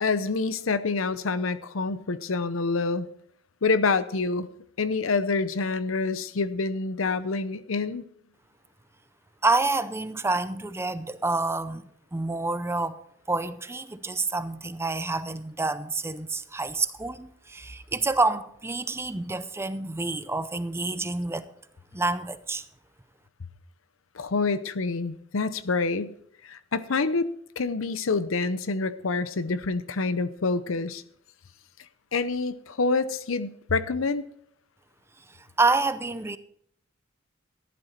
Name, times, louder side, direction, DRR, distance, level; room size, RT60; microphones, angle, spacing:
voice 1, 0.0-3.1 3.6-4.5 4.8-8.0 24.1-26.1 26.4-27.3 27.6-31.0 32.1-34.2, left 4 dB, 75° left, 0.7 m, -27 dB
voice 2, 9.4-11.8 12.1-13.0 13.3-21.5 21.9-22.6 35.6-36.4, right 3 dB, 15° right, 0.6 m, -28 dB
14.0 x 11.0 x 4.3 m
head